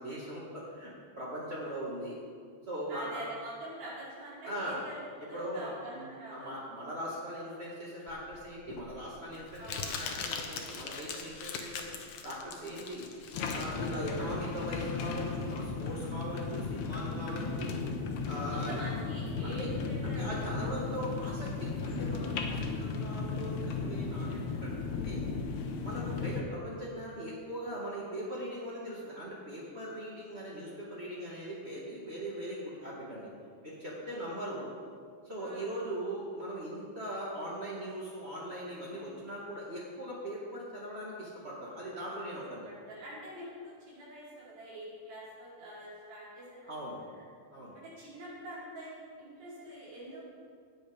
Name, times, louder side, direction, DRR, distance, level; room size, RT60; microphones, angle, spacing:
voice 1, 0.0-2.2 2.7-3.3 4.4-4.8 5.3-11.8 12.2-13.1 13.5-17.8 18.3-18.8 19.4-19.7 20.0-25.2 25.8-33.3 33.6-34.7 35.2-42.7 46.7-47.0 47.5-47.7, equal, 40° right, -7 dB, 0.8 m, -40 dB
voice 2, 2.9-6.5 9.6-10.0 13.1-13.2 17.3-17.6 18.5-20.5 22.9-23.0 25.9-26.3 30.2-30.5 34.0-34.2 35.4-35.7 42.6-46.9 47.1-47.2 47.7-50.2, right 1 dB, 90° right, -8 dB, 6.7 m, -46 dB
Crumpling crinkling, 8.1-15.2, left 6 dB, 65° left, 2.0 m, -41 dB
sound 1, 13.3-26.4, left 4 dB, 85° left, 3.1 m, -35 dB
18.0 x 8.0 x 5.2 m, 2.1 s
omnidirectional pair, 4.7 m